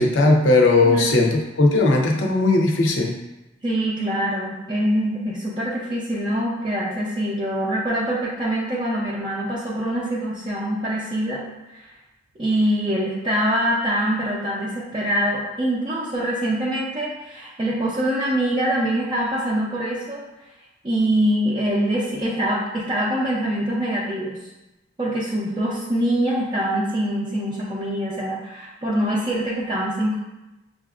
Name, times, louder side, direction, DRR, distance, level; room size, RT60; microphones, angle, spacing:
voice 1, 0.0-3.2, left 2 dB, 70° left, 0 dB, 0.6 m, -18 dB
voice 2, 0.8-1.3 3.6-11.4 11.7-11.9 12.4-20.2 20.8-24.4 25.0-30.2, right 1 dB, 25° right, -7 dB, 0.5 m, -24 dB
6.5 x 2.5 x 2.4 m, 1.0 s
head